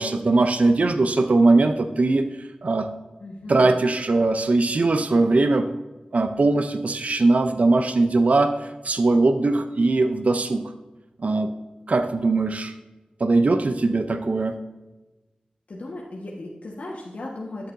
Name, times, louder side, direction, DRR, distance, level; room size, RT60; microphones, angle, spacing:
voice 1, 0.0-2.3 2.6-2.9 3.5-5.7 6.1-10.6 11.2-11.5 11.9-12.7 13.2-14.6, right 3 dB, 60° right, 9 dB, 0.5 m, -20 dB
voice 2, 3.2-3.8 15.7-17.7, left 2 dB, 70° left, -4 dB, 1.4 m, -36 dB
11.0 x 7.6 x 2.7 m, 1.1 s
cardioid pair, 50°, 3 cm